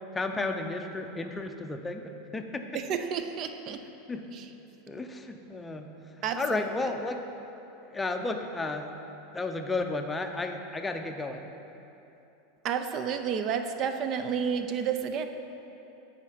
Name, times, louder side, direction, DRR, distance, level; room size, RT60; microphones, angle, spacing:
voice 1, 0.1-2.6 4.1-4.4 4.9-5.9 6.4-7.2 7.9-8.8 9.3-11.5, left 2 dB, 15° left, 5 dB, 0.6 m, -33 dB
voice 2, 2.7-3.8 4.3-4.5 6.2-6.7 12.6-15.3, right 7 dB, 45° right, 8 dB, 0.5 m, -31 dB
8.9 x 4.3 x 5.7 m, 3.0 s
supercardioid pair, 120°, 0 cm